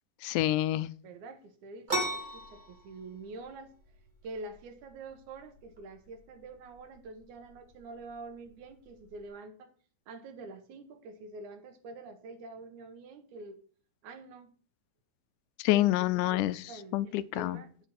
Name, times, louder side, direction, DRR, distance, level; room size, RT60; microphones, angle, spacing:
voice 1, 0.2-0.9 15.6-16.6 16.9-17.6, left 15 dB, 85° left, 16 dB, 2.0 m, -27 dB
voice 2, 1.0-3.7 4.2-9.7 10.1-13.6 14.0-14.5 15.7-15.9 16.2-17.9, right 3 dB, 80° right, 8 dB, 2.5 m, -46 dB
sound 1, 1.9-9.3, right 1 dB, 50° right, 0.5 m, -40 dB
9.2 x 7.7 x 4.2 m, 0.43 s
omnidirectional pair, 3.5 m